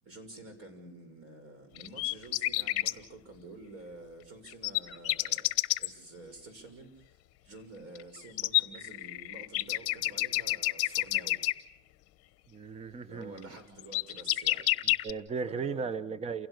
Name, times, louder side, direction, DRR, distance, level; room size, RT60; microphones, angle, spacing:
voice 1, 0.0-5.5 5.8-7.1 7.4-11.4 13.1-14.7 15.4-15.9, right 2 dB, 40° right, 7 dB, 6.3 m, -49 dB
sound 1, 1.8-2.9 4.5-5.9 7.9-8.0 8.4-11.5 13.4-13.5 13.8-15.1, left 18 dB, 40° left, 1.1 m, -28 dB
voice 2, 12.5-13.5 14.8-16.5, right 5 dB, 15° right, 15 dB, 0.8 m, -36 dB
29.0 x 16.5 x 6.5 m, 0.75 s
supercardioid pair, 135°, 36 cm